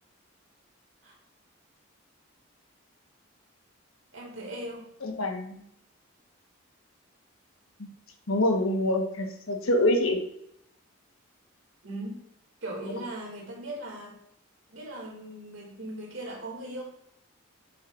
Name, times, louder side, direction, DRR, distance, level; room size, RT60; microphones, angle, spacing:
voice 1, 4.1-4.9 11.8-12.3 12.6-14.1 14.7-16.8, right 1 dB, 65° right, -1 dB, 2.1 m, -38 dB
voice 2, 5.0-5.6 7.8-7.9 8.3-10.2, left 1 dB, 75° left, 4 dB, 1.0 m, -26 dB
7.1 x 6.8 x 2.4 m, 0.75 s
head